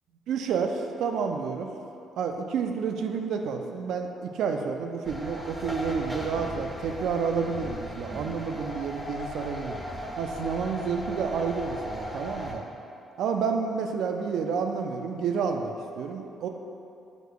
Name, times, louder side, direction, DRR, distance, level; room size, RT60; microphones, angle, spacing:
voice 1, 0.3-1.7 2.2-9.8 10.2-12.7 13.2-16.5, right 5 dB, 80° right, 5 dB, 0.3 m, -30 dB
sound 1, 5.0-12.5, equal, 5° right, 0.5 m, -37 dB
5.0 x 2.2 x 4.6 m, 2.7 s
cardioid pair, 90°, 0 cm